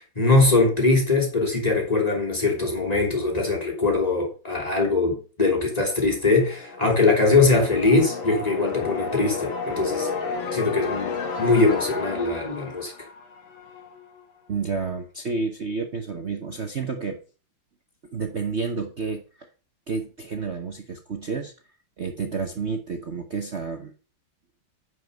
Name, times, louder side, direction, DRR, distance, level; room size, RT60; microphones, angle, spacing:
voice 1, 0.0-10.1 10.5-12.9, left 3 dB, 15° left, 3.0 m, -21 dB
sound 1, 6.2-14.0, left 5 dB, 65° left, 2.4 m, -32 dB
voice 2, 14.5-17.2 18.1-19.5 19.9-21.5 22.0-23.9, right 4 dB, 45° right, 0.9 m, -30 dB
9.7 x 5.3 x 6.4 m
omnidirectional pair, 2.3 m